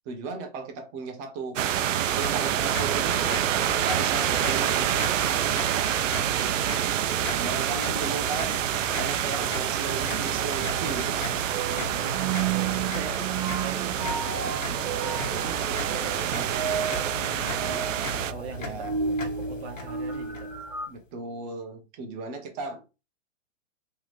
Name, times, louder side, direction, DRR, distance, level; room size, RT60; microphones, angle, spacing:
voice 1, 0.0-1.6 2.1-3.4 3.8-5.0 7.4-8.6 8.9-11.5 18.6-19.0 20.9-22.9, right 3 dB, 35° right, 1.1 m, -36 dB
sound 1, 1.6-18.3, right 10 dB, 75° right, 0.6 m, -27 dB
sound 2, 2.2-21.0, left 2 dB, 85° left, 1.8 m, -38 dB
voice 2, 6.1-7.5 7.8-8.0 11.9-13.2 13.6-17.9 18.3-20.5, right 6 dB, 55° right, 1.3 m, -42 dB
sound 3, 9.1-20.9, right 6 dB, 10° right, 0.6 m, -33 dB
3.6 x 3.2 x 3.2 m
hypercardioid pair, 140°, 38 cm